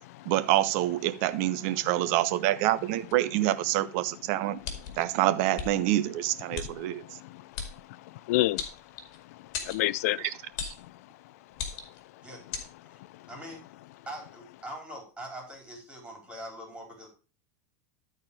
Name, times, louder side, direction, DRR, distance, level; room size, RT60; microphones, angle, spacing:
voice 1, 0.2-4.6 5.0-7.1 10.2-10.3 10.6-10.7, right 15 dB, 60° right, 0.8 m, -26 dB
sound 1, 4.6-5.0 5.5-5.7 6.5-6.7 7.5-7.7 8.6-9.2 9.5-9.8 10.6-10.8 11.5-12.0 12.5-12.7, left 7 dB, 50° left, 2.3 m, -35 dB
voice 2, 6.5-7.5 8.1-8.6 9.3-9.4 9.6-10.3, left 17 dB, 70° left, 0.4 m, -30 dB
voice 3, 13.3-13.6 14.1-17.1, right 1 dB, 10° right, 4.4 m, -42 dB
12.5 x 4.4 x 4.9 m
hypercardioid pair, 100°, 9 cm